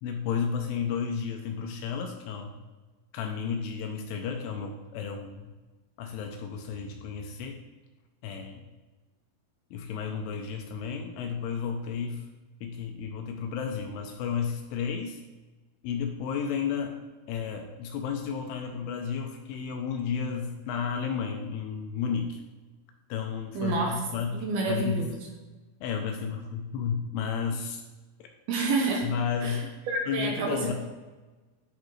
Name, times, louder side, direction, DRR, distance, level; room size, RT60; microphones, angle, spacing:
voice 1, 0.0-2.5 3.1-5.5 6.0-7.6 8.2-8.6 9.7-12.2 12.6-15.2 15.8-17.0 17.3-22.4 23.1-25.0 25.8-27.8 29.0-29.7 30.1-30.7, left 6 dB, 80° left, 3 dB, 2.6 m, -32 dB
voice 2, 23.5-24.0 24.3-25.1 28.5-29.1 29.4-29.6 29.9-30.7, right 3 dB, 75° right, 1 dB, 2.5 m, -28 dB
11.0 x 4.5 x 3.2 m, 1.2 s
omnidirectional pair, 4.9 m